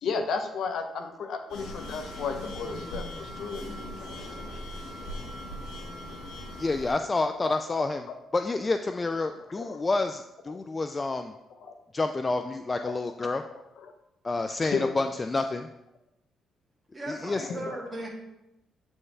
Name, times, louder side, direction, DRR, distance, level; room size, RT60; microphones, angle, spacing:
voice 1, 0.0-4.5 9.6-9.8 11.6-11.7 12.8-12.9 13.5-13.9 14.6-15.0 17.4-17.6, left 5 dB, 70° left, 6 dB, 0.7 m, -34 dB
sound 1, 1.5-6.9, left 1 dB, 90° left, 1.5 m, -39 dB
voice 2, 6.6-8.1 8.3-11.3 11.9-13.4 14.2-15.7 17.1-17.5, left 3 dB, 25° left, 7 dB, 0.3 m, -29 dB
voice 3, 16.9-18.1, right 1 dB, 25° right, -1 dB, 1.8 m, -37 dB
8.3 x 4.4 x 3.3 m, 0.89 s
cardioid pair, 90°, 0 cm